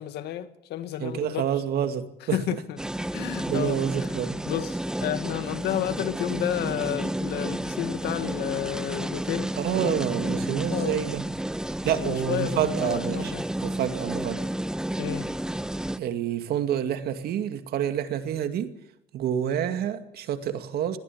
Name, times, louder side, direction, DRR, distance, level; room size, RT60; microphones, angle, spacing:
voice 1, 0.0-1.6 2.2-2.8 3.1-4.2 4.5-10.0 10.7-11.1 11.9-13.4 15.0-15.3, left 12 dB, 75° left, 2.0 m, -31 dB
voice 2, 1.0-2.4 3.5-4.4 9.6-11.3 11.8-13.3 13.6-14.4 16.0-18.7 19.1-21.0, right 9 dB, 70° right, 2.3 m, -28 dB
sound 1, 2.8-16.0, right 1 dB, 5° right, 0.7 m, -31 dB
21.5 x 15.5 x 8.6 m
cardioid pair, 110°, 17 cm